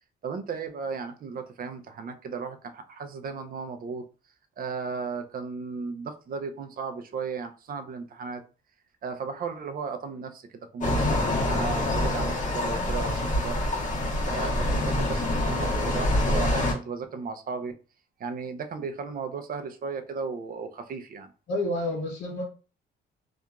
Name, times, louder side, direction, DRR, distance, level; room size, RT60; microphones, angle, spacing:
voice 1, 0.2-4.1 4.6-8.4 9.0-13.6 14.2-17.7 18.2-21.3, right 5 dB, 45° right, 7 dB, 0.5 m, -35 dB
sound 1, 10.8-16.7, left 1 dB, 40° left, 1.3 m, -26 dB
voice 2, 21.5-22.4, left 1 dB, 70° left, -1 dB, 0.7 m, -29 dB
2.8 x 2.4 x 2.3 m, 0.36 s
cardioid pair, 90°, 20 cm